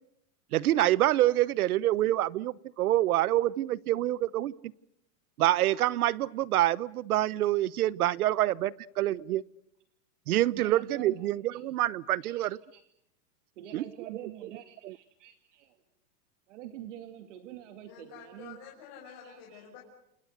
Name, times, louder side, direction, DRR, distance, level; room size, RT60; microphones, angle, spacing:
voice 1, 0.5-4.5 5.4-9.4 10.3-12.6 13.7-13.8 14.8-14.9, right 14 dB, 70° right, 21 dB, 1.0 m, -26 dB
voice 2, 10.5-11.6 12.2-12.9 13.6-15.8 16.5-18.6 19.0-19.7, right 12 dB, 50° right, 8 dB, 2.5 m, -46 dB
voice 3, 17.9-19.8, left 7 dB, 35° left, -2 dB, 6.0 m, -49 dB
29.5 x 29.0 x 6.6 m, 0.79 s
supercardioid pair, 170°, 45 cm